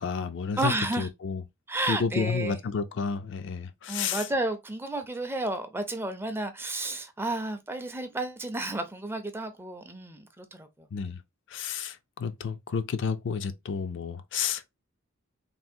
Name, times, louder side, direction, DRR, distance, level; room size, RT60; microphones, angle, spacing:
voice 1, 0.0-0.7 1.0-1.4 1.9-4.2 10.9-11.2 11.5-11.9 12.2-14.8, left 6 dB, 60° left, 0.4 m, -31 dB
voice 2, 0.6-1.1 1.7-2.6 3.9-10.9, right 2 dB, 10° right, 0.4 m, -32 dB
3.4 x 2.4 x 2.6 m
head